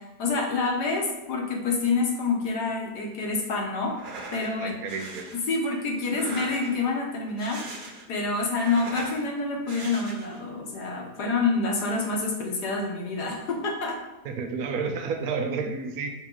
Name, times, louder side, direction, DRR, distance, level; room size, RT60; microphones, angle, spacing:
voice 1, 0.2-4.0 4.3-4.8 5.3-7.6 8.1-14.0, left 3 dB, 85° left, 1 dB, 1.7 m, -27 dB
sound 1, 3.9-4.5 4.9-5.4 6.0-6.9 7.3-8.2 8.5-9.2 9.7-10.4, right 3 dB, 45° right, 0.7 m, -40 dB
voice 2, 4.4-5.3 14.3-16.1, right 5 dB, 70° right, 5 dB, 1.1 m, -31 dB
6.0 x 4.6 x 3.9 m, 0.99 s
omnidirectional pair, 1.7 m